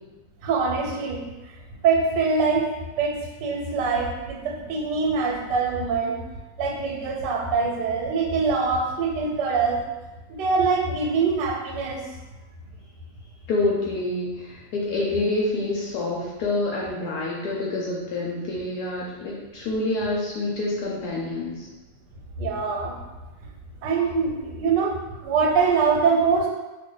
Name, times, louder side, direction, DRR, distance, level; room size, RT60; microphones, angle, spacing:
voice 1, 0.4-1.2 1.8-2.7 3.0-6.2 6.6-9.8 10.4-12.0 22.4-23.0 23.8-25.0 25.2-26.5, right 5 dB, 85° right, 0 dB, 1.2 m, -23 dB
voice 2, 13.5-21.7, left 2 dB, 75° left, -4 dB, 1.1 m, -27 dB
2.6 x 2.4 x 3.7 m, 1.1 s
omnidirectional pair, 1.8 m